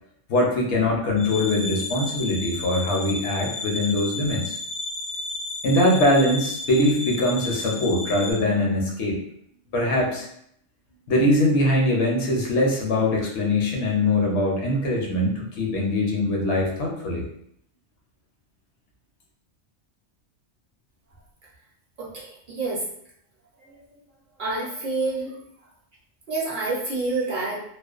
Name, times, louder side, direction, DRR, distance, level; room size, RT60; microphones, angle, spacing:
voice 1, 0.3-4.6 5.6-9.2 9.7-10.3 11.1-17.2, left 1 dB, 75° left, -1 dB, 0.9 m, -22 dB
sound 1, 1.2-8.3, left 2 dB, 10° left, 0.4 m, -33 dB
voice 2, 22.0-22.8 23.7-23.8 24.4-25.4 26.3-27.6, right 3 dB, 50° right, -6 dB, 0.7 m, -28 dB
2.4 x 2.1 x 2.3 m, 0.70 s
omnidirectional pair, 1.2 m